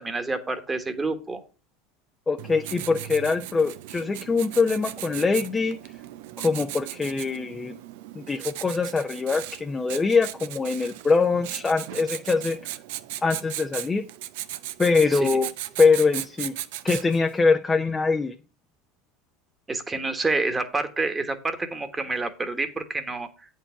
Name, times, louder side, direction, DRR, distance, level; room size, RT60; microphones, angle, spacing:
voice 1, 0.0-1.4 15.1-15.3 19.7-23.3, right 3 dB, 20° right, 8 dB, 1.4 m, -28 dB
voice 2, 2.3-5.8 6.4-7.7 8.1-12.6 13.2-14.0 14.8-15.5 15.8-16.5 16.8-18.3, left 4 dB, 20° left, 5 dB, 0.7 m, -23 dB
Writing, 2.4-17.3, right 14 dB, 75° right, 0.6 m, -37 dB
8.7 x 4.6 x 5.9 m, 0.34 s
hypercardioid pair, 95°, 0 cm